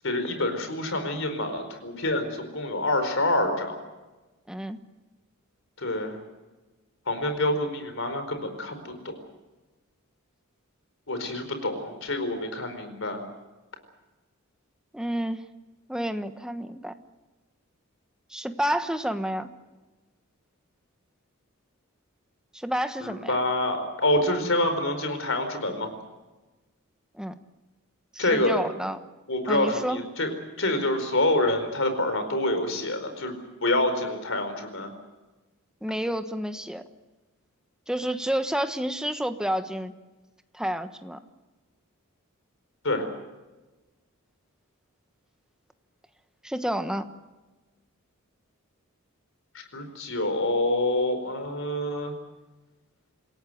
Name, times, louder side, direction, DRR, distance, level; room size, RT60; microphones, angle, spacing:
voice 1, 0.0-3.8 5.8-6.2 7.1-9.2 11.1-13.2 23.0-25.9 28.2-28.6 29.3-30.3 30.6-33.3 33.6-34.9 42.8-43.1 49.5-52.1, left 1 dB, 60° left, 8 dB, 4.6 m, -27 dB
voice 2, 4.5-4.8 14.9-15.4 15.9-16.9 18.3-19.5 22.5-23.3 27.2-27.3 28.1-29.0 29.5-30.0 35.8-36.8 37.9-39.9 40.5-41.2 46.4-47.0, equal, 5° right, 8 dB, 1.2 m, -29 dB
27.5 x 17.0 x 7.9 m, 1.1 s
head